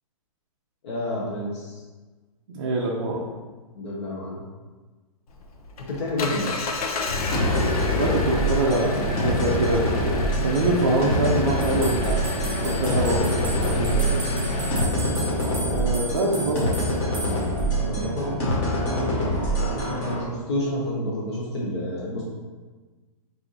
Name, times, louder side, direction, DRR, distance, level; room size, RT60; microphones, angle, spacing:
voice 1, 0.8-1.8 3.7-4.4 5.8-6.4 13.7-14.2 17.8-18.4 18.8-22.2, left 1 dB, 50° left, -5 dB, 1.0 m, -30 dB
voice 2, 2.5-3.3 7.9-14.0 15.5-16.7 19.0-19.2, right 2 dB, 40° right, -5 dB, 0.5 m, -25 dB
Engine, 5.3-14.8, left 1 dB, 80° left, 0.7 m, -29 dB
sound 1, 7.3-20.2, equal, 20° left, 0.9 m, -25 dB
sound 2, 11.6-17.7, right 2 dB, 15° right, 1.0 m, -35 dB
4.5 x 2.7 x 3.9 m, 1.3 s
hypercardioid pair, 180°, 19 cm